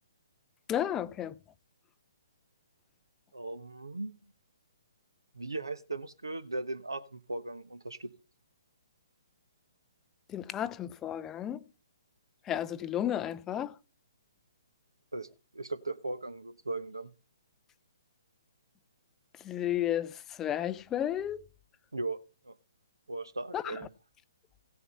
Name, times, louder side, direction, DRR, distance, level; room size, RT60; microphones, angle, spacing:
voice 1, 0.7-1.4 10.3-11.6 12.5-13.7 19.4-21.4 23.5-23.6, left 11 dB, 15° left, 0.5 m, -32 dB
voice 2, 3.3-4.1 5.3-8.1 15.1-17.1 21.9-22.5 23.1-23.9, right 2 dB, 75° right, 1.2 m, -38 dB
16.0 x 6.9 x 5.6 m
figure-of-eight pair, 130°, 2 cm